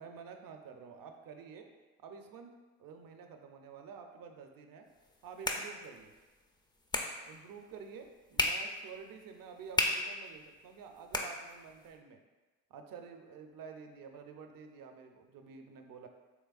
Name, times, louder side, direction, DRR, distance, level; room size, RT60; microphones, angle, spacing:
voice 1, 0.0-1.7 2.0-4.9 5.2-6.1 7.2-12.2 12.7-16.1, right 6 dB, 50° right, 5 dB, 0.5 m, -50 dB
sound 1, 4.9-11.9, left 2 dB, 10° left, 0.3 m, -38 dB
3.3 x 3.1 x 2.4 m, 1.2 s
hypercardioid pair, 50°, 43 cm